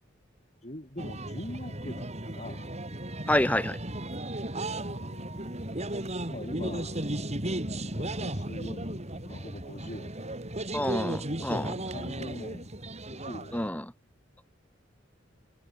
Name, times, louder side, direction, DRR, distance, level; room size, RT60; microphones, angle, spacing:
voice 1, 0.6-2.9 4.6-5.9 6.3-7.1 7.9-10.4 11.4-12.8 13.1-13.6, left 1 dB, 35° left, 7.4 m, -44 dB
sound 1, 1.0-13.7, right 1 dB, 35° right, 5.5 m, -35 dB
voice 2, 3.3-3.8 10.7-11.7 13.5-13.9, left 1 dB, 10° left, 2.2 m, -28 dB
head